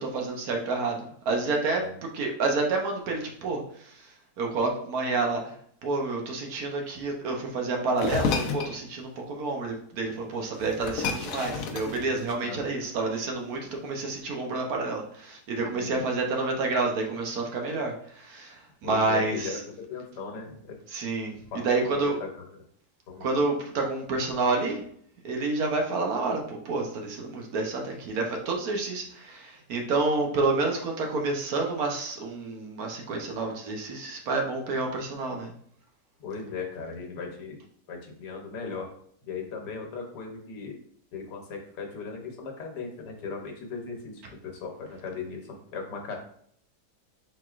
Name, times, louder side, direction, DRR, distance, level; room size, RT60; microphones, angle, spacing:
voice 1, 0.0-1.8 2.1-5.5 5.8-19.6 20.9-22.2 23.2-24.8 25.2-35.5, right 3 dB, 65° right, 1 dB, 1.2 m, -29 dB
sound 1, 8.0-8.8 10.1-10.2 10.5-12.6, left 5 dB, 65° left, 0.9 m, -31 dB
voice 2, 12.4-12.9 15.7-16.0 18.8-20.8 21.5-21.6 21.9-22.4 23.1-23.4 36.2-37.6 37.9-38.9 39.3-40.8 41.1-46.2, left 4 dB, 85° left, 2 dB, 1.5 m, -37 dB
4.4 x 4.0 x 2.4 m, 0.62 s
omnidirectional pair, 1.8 m